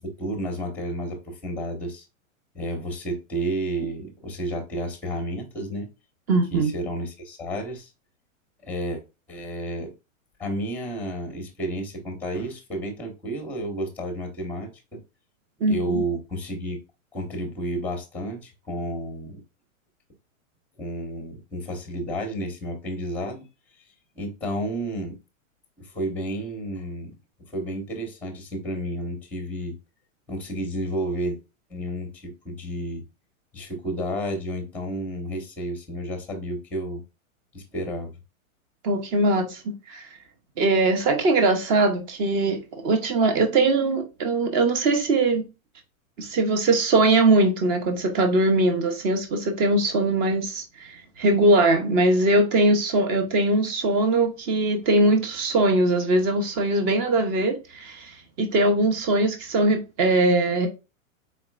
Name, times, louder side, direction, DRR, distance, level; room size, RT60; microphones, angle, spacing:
voice 1, 0.0-2.0 2.5-5.9 6.5-7.9 8.6-9.0 9.3-9.9 10.4-15.0 15.7-16.8 17.1-19.4 20.8-23.5 24.1-25.2 25.8-27.1 27.5-29.7 30.3-31.4 31.7-33.0 33.5-37.0 37.5-38.1, right 1 dB, 5° left, 0.9 m, -31 dB
voice 2, 6.3-6.7 15.6-16.0 38.8-39.6 39.9-40.1 40.6-45.5 46.2-58.1 58.4-60.7, right 2 dB, 20° right, 0.7 m, -21 dB
4.1 x 4.1 x 2.2 m
supercardioid pair, 160°, 41 cm